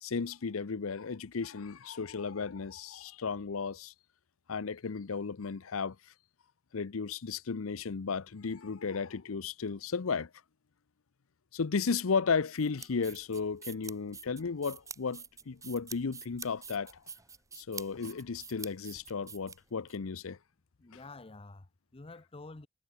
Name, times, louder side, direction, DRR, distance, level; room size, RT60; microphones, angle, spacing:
voice 1, 0.0-3.9 4.5-6.0 6.7-10.3 11.5-17.0 17.5-20.4, left 5 dB, 80° left, 0.7 m, -34 dB
sound 1, 12.5-20.0, right 5 dB, 15° right, 0.9 m, -47 dB
voice 2, 20.8-22.7, left 3 dB, 30° left, 0.8 m, -49 dB
head